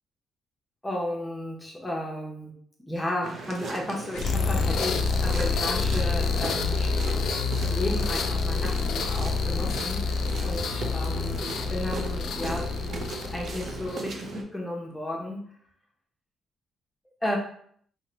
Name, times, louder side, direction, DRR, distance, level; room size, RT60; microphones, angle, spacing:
voice 1, 0.8-2.5 2.9-6.9 7.7-12.8 13.3-15.4 17.2-17.4, left 1 dB, 10° left, -1 dB, 0.9 m, -33 dB
sound 1, 3.2-14.4, right 3 dB, 60° right, 0.5 m, -37 dB
sound 2, 4.1-14.1, left 4 dB, 70° left, 0.3 m, -27 dB
2.8 x 2.2 x 3.9 m, 0.62 s
cardioid pair, 90°, 0 cm